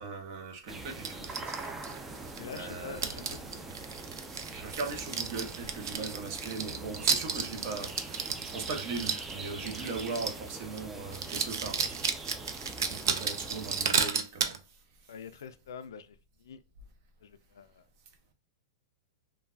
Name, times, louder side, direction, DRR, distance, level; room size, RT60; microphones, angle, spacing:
voice 1, 0.0-3.8 4.5-12.0 12.5-14.8, right 4 dB, 50° right, 0.7 m, -40 dB
sound 1, 0.7-14.1, right 2 dB, 10° right, 0.3 m, -43 dB
sound 2, 1.0-2.6 3.0-10.5 10.8-10.9 11.1-14.6, right 6 dB, 90° right, 0.4 m, -33 dB
voice 2, 2.4-3.4 3.9-4.0 15.1-16.6 17.2-17.9, left 6 dB, 85° left, 0.3 m, -45 dB
3.2 x 2.2 x 2.3 m
hypercardioid pair, 135°, 2 cm